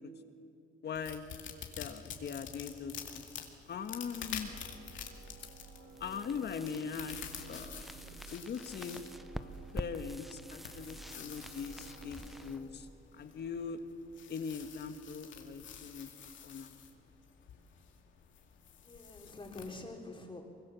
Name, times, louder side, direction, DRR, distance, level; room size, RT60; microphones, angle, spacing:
voice 1, 0.8-1.2 1.8-3.3 3.7-4.5 6.0-7.2 7.5-9.0 9.4-12.9 13.1-13.8 14.3-16.1 16.4-16.8, left 6 dB, 55° left, 8 dB, 1.7 m, -41 dB
sound 1, 0.9-19.8, left 8 dB, 75° left, 2.3 m, -49 dB
sound 2, 4.0-12.7, right 4 dB, 85° right, 4.4 m, -53 dB
sound 3, 5.9-13.7, equal, ahead, 0.7 m, -48 dB
voice 2, 18.7-20.4, left 2 dB, 25° left, 1 dB, 3.9 m, -46 dB
24.0 x 22.5 x 7.2 m, 2.6 s
cardioid pair, 90°, 20 cm